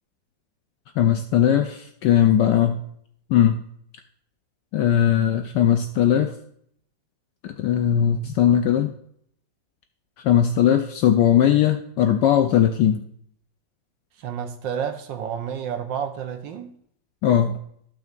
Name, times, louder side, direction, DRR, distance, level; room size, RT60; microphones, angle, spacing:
voice 1, 1.0-2.8 3.3-3.6 4.7-6.3 7.4-8.9 10.2-13.1 17.2-17.6, left 10 dB, 70° left, 1.2 m, -19 dB
voice 2, 14.2-16.8, right 8 dB, 75° right, 1.6 m, -30 dB
15.0 x 5.8 x 2.5 m
omnidirectional pair, 2.1 m